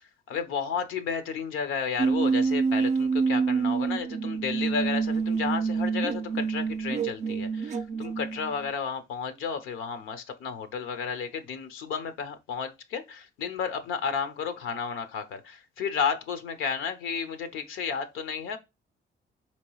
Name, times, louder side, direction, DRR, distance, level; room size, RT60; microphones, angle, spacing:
voice 1, 0.3-18.6, left 6 dB, 90° left, 0.7 m, -32 dB
sound 1, 2.0-8.7, right 5 dB, 35° right, 0.4 m, -27 dB
4.6 x 2.9 x 2.9 m
cardioid pair, 90°, 20 cm